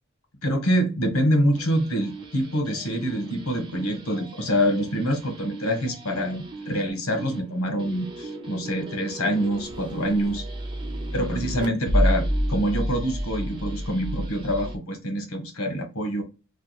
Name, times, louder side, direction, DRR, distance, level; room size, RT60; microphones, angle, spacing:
voice 1, 0.4-10.4 11.1-12.2 12.5-16.2, equal, 80° left, 4 dB, 1.2 m, -25 dB
sound 1, 1.5-14.8, equal, 25° right, 0.7 m, -31 dB
3.3 x 2.2 x 4.1 m, 0.30 s
head